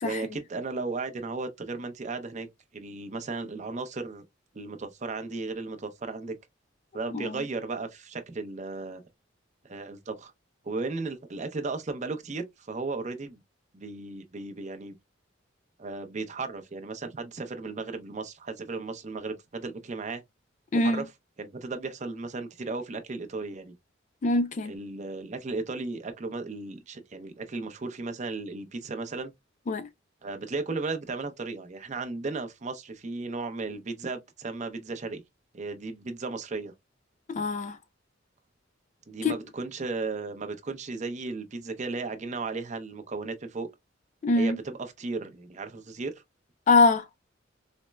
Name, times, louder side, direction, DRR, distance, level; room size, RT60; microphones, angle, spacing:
voice 1, 0.0-2.5 2.7-4.2 4.5-6.3 6.9-9.0 9.6-10.3 10.6-13.4 13.7-14.9 15.8-20.2 20.8-21.0 21.4-23.7 24.6-29.3 30.2-35.2 35.5-36.7 39.1-43.7 44.4-46.1, right 3 dB, 40° right, 0.6 m, -35 dB
voice 2, 20.7-21.0 24.2-24.7 29.7-29.9 37.3-37.8 39.2-39.3 44.2-44.6 46.7-47.1, left 3 dB, 40° left, 0.3 m, -23 dB
4.2 x 2.0 x 2.2 m
head